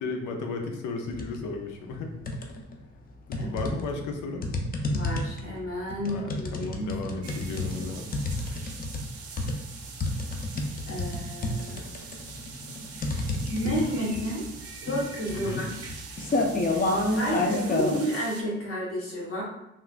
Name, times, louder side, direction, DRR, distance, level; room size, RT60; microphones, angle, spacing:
voice 1, 0.0-2.1 3.3-4.5 6.1-8.1 15.3-15.6, left 3 dB, 85° left, 3 dB, 0.6 m, -34 dB
sound 1, 1.1-1.4 1.8-2.8 3.3-18.0, left 2 dB, 30° left, 0.5 m, -30 dB
voice 2, 4.9-6.9 10.9-11.8 13.5-14.4 14.9-15.7 17.1-19.4, equal, 45° left, -4 dB, 1.3 m, -31 dB
sound 2, 7.2-18.4, right 5 dB, 50° right, 0.6 m, -43 dB
3.5 x 2.3 x 2.4 m, 0.90 s
cardioid pair, 90°, 30 cm